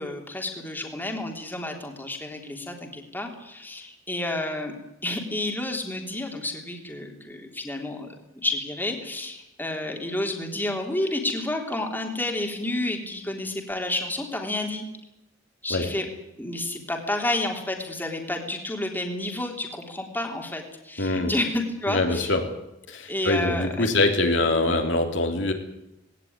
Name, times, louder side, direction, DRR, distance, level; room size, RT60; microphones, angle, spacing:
voice 1, 0.0-4.7 5.0-8.1 8.3-14.9 15.6-16.1 16.4-22.4 23.1-23.9, left 1 dB, 10° left, 2 dB, 3.5 m, -30 dB
voice 2, 21.0-21.3 21.9-22.4 22.9-25.5, left 2 dB, 70° left, 3 dB, 3.3 m, -23 dB
19.0 x 18.5 x 9.7 m, 0.88 s
head